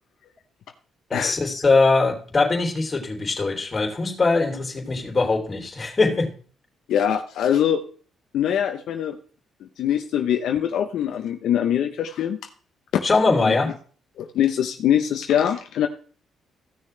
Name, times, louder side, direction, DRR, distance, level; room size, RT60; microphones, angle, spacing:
voice 1, 1.1-6.3 13.0-13.7, left 3 dB, 30° left, 2 dB, 3.2 m, -21 dB
voice 2, 6.9-7.8 8.3-9.2 9.6-12.4 12.9-13.0 13.4-13.5 14.2-15.9, left 9 dB, 75° left, 5 dB, 0.8 m, -23 dB
15.5 x 6.5 x 3.3 m, 0.42 s
cardioid pair, 90°, 0 cm